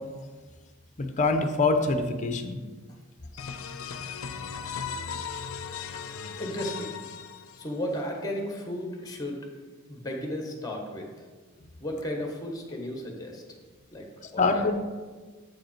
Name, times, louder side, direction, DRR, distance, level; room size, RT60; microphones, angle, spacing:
voice 1, 1.2-2.6 14.4-14.7, left 3 dB, 35° left, 7 dB, 0.6 m, -24 dB
sound 1, 3.4-8.0, left 6 dB, 85° left, 0.5 m, -37 dB
voice 2, 6.4-7.0 7.5-9.5 9.9-11.3 11.8-13.4 13.9-14.6, left 1 dB, 20° left, 2 dB, 1.2 m, -34 dB
7.4 x 5.2 x 4.4 m, 1.4 s
head